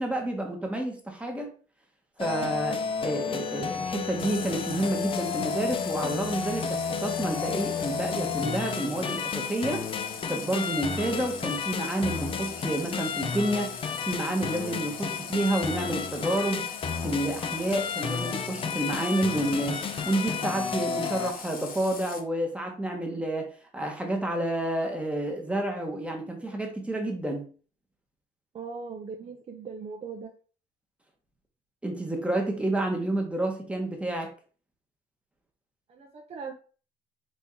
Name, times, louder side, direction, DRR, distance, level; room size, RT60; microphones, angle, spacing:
voice 1, 0.0-1.5 2.2-9.9 10.3-16.7 17.0-23.5 23.7-27.5 31.8-34.3, right 1 dB, 5° right, 2 dB, 1.0 m, -29 dB
sound 1, 2.2-21.3, left 6 dB, 30° left, 0.5 m, -32 dB
Water tap faucet, 4.2-22.2, left 5 dB, 55° left, 0.9 m, -41 dB
voice 2, 28.5-30.3 35.9-36.5, right 5 dB, 40° right, 1 dB, 0.6 m, -39 dB
4.2 x 2.8 x 3.6 m, 0.40 s
cardioid pair, 110°, 17 cm